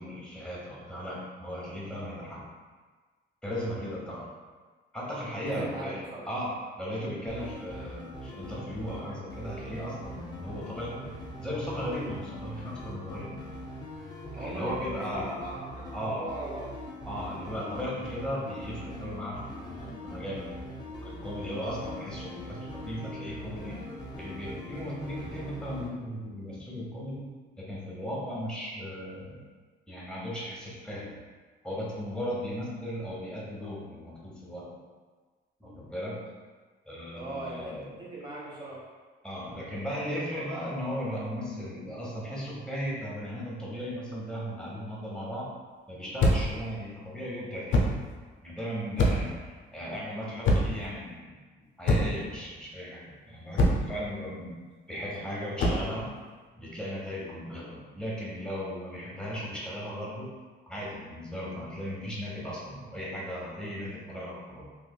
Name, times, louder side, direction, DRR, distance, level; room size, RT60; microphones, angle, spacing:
voice 1, 0.0-2.5 3.4-4.2 4.9-13.3 14.4-16.3 17.1-20.6 20.9-23.9 24.2-27.3 27.6-29.4 29.9-31.1 31.6-34.7 35.6-36.3 36.8-37.9 39.2-45.5 45.9-47.8 48.4-49.4 49.7-51.4 51.8-54.6 54.9-56.2 56.5-60.3 60.7-64.7, equal, 5° left, -5 dB, 1.0 m, -36 dB
voice 2, 5.5-6.3 14.3-16.6 37.1-37.7 38.0-38.8, right 2 dB, 25° right, -6 dB, 1.1 m, -39 dB
sound 1, 7.3-25.9, equal, 20° left, 0.6 m, -42 dB
sound 2, 46.2-46.6 47.7-48.0 49.0-49.4 50.4-50.9 51.9-52.3 53.6-54.0 55.6-55.9, left 1 dB, 75° left, 0.6 m, -24 dB
3.1 x 2.8 x 2.3 m, 1.4 s
cardioid pair, 90°, 20 cm